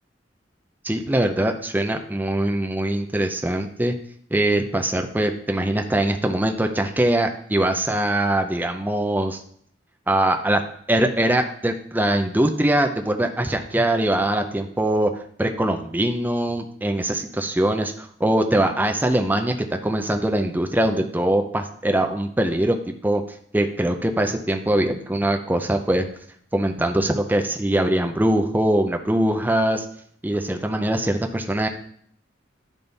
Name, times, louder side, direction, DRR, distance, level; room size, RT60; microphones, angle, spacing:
voice 1, 0.8-3.9 4.3-9.4 10.1-22.8 23.0-23.2 23.5-26.1 26.5-29.8 30.2-31.7, right 1 dB, 10° right, 5 dB, 0.5 m, -22 dB
10.5 x 3.7 x 4.0 m, 0.62 s
head